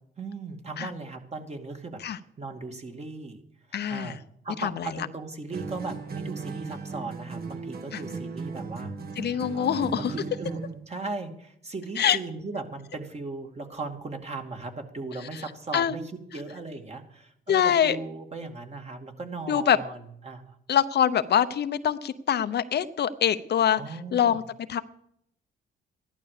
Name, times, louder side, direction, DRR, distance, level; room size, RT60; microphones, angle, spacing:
voice 1, 0.2-2.0 2.4-3.4 3.7-4.2 4.4-8.9 9.3-10.6 10.9-20.6 23.7-24.4, right 3 dB, 35° right, 4 dB, 2.3 m, -38 dB
voice 2, 3.7-4.2 4.6-4.9 7.9-8.0 9.2-10.1 12.0-12.2 15.3-15.4 15.7-16.0 17.5-18.0 19.5-19.8 20.7-24.8, left 9 dB, 55° left, 11 dB, 0.8 m, -24 dB
sound 1, 5.5-10.8, right 4 dB, 50° right, 1.6 m, -37 dB
14.5 x 11.5 x 6.7 m, 0.73 s
cardioid pair, 90°, 20 cm